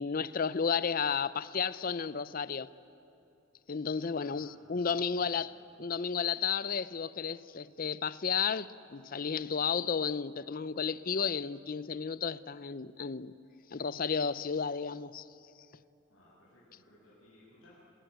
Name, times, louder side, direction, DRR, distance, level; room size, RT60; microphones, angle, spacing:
voice 1, 0.0-2.7 3.7-5.5 5.8-13.3 13.7-15.3, left 6 dB, 45° left, 0.6 m, -33 dB
voice 2, 4.0-5.3 16.1-17.7, left 1 dB, 80° left, 7.9 m, -60 dB
28.0 x 20.5 x 9.4 m
head